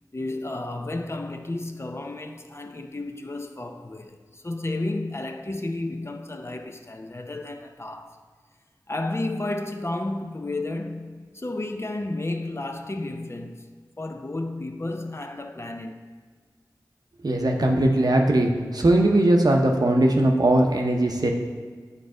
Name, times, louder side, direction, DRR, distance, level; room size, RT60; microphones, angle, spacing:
voice 1, 0.1-8.2 8.9-13.7 14.0-16.0, left 2 dB, 35° left, 0.5 m, -32 dB
voice 2, 17.2-21.3, right 1 dB, 60° right, 0.8 m, -20 dB
9.0 x 3.9 x 3.7 m
wide cardioid pair, 40°, 7 cm